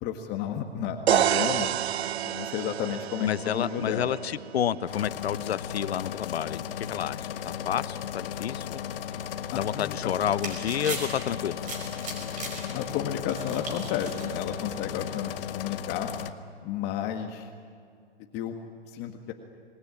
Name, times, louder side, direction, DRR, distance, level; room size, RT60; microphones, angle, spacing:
voice 1, 0.0-1.7 2.2-4.2 9.5-10.1 12.3-16.1 16.6-17.5 18.3-18.6 18.9-19.3, left 9 dB, 30° left, 5 dB, 1.7 m, -32 dB
sound 1, 1.1-4.9, right 11 dB, 80° right, 0.6 m, -28 dB
voice 2, 3.2-8.8 9.5-11.6, left 10 dB, 75° left, 17 dB, 0.9 m, -30 dB
sound 2, 4.9-16.3, left 9 dB, 60° left, 1.4 m, -36 dB
sound 3, 9.9-15.1, right 2 dB, 25° right, 5.5 m, -40 dB
26.5 x 20.0 x 9.9 m, 2.3 s
hypercardioid pair, 130°, 32 cm